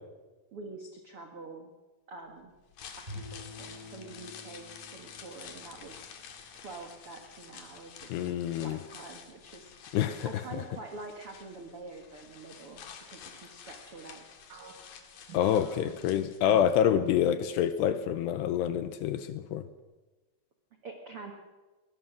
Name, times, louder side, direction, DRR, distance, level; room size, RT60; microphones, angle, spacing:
voice 1, 0.5-1.7 2.1-2.5 3.0-6.1 6.5-8.2 8.6-9.9 10.2-14.2 20.8-21.3, right 3 dB, 70° right, 3 dB, 1.3 m, -46 dB
sound 1, 2.6-16.8 17.1-17.2, left 7 dB, 55° left, 3.0 m, -50 dB
Bowed string instrument, 3.1-7.3, left 2 dB, 10° right, 7.3 m, -49 dB
voice 2, 8.1-8.8 9.9-10.3 15.3-19.6, left 10 dB, 75° left, 11 dB, 2.6 m, -27 dB
sound 2, 14.5-17.3 17.7-17.9 18.5-19.0, right 7 dB, 55° right, 3.0 m, -51 dB
23.5 x 19.5 x 6.2 m, 1.2 s
omnidirectional pair, 5.4 m